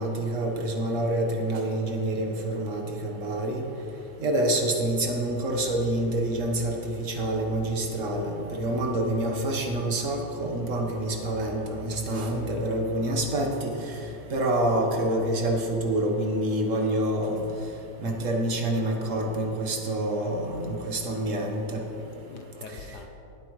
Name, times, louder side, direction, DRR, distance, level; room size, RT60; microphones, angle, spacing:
voice 1, 0.0-3.6 4.2-14.0 14.3-17.4 18.0-21.8 22.7-22.8, right 1 dB, 45° right, 2 dB, 1.4 m, -27 dB
voice 2, 12.3-12.7 18.0-18.1 22.0-23.1, left 6 dB, 65° left, 4 dB, 1.1 m, -42 dB
19.5 x 8.4 x 3.2 m, 2.9 s
omnidirectional pair, 2.2 m